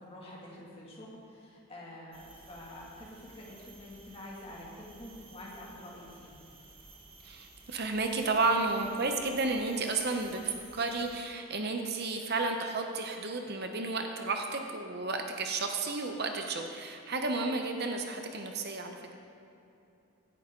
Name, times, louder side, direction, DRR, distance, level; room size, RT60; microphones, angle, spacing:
voice 1, 0.0-6.5, left 1 dB, 25° left, -4 dB, 2.2 m, -47 dB
sound 1, 2.1-11.2, right 3 dB, 25° right, 1.3 m, -55 dB
voice 2, 7.2-19.1, right 3 dB, 45° right, 4 dB, 0.8 m, -32 dB
16.5 x 10.5 x 3.8 m, 2.8 s
head